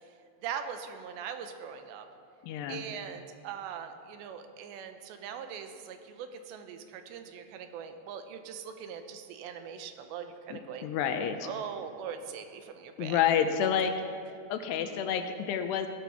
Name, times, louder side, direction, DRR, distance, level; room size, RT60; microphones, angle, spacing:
voice 1, 0.4-2.1 2.7-10.9 11.4-13.4, right 7 dB, 80° right, 7 dB, 3.1 m, -41 dB
voice 2, 2.4-2.8 10.5-11.4 13.0-13.9 14.5-15.9, left 8 dB, 80° left, 7 dB, 2.7 m, -29 dB
18.0 x 12.5 x 5.8 m, 2.4 s
omnidirectional pair, 5.1 m